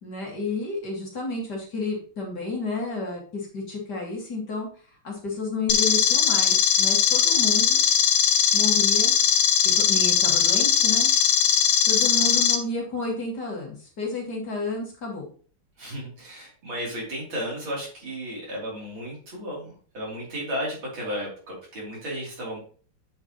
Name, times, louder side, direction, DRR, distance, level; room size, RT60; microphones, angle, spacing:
voice 1, 0.0-4.7 5.0-7.9 8.5-9.1 9.8-11.1 11.9-15.3, left 3 dB, 50° left, -1 dB, 2.6 m, -31 dB
sound 1, 5.7-12.5, left 8 dB, 80° left, 1.8 m, -20 dB
voice 2, 15.8-22.6, equal, 60° right, -5 dB, 4.2 m, -34 dB
8.6 x 5.6 x 3.1 m, 0.42 s
omnidirectional pair, 2.4 m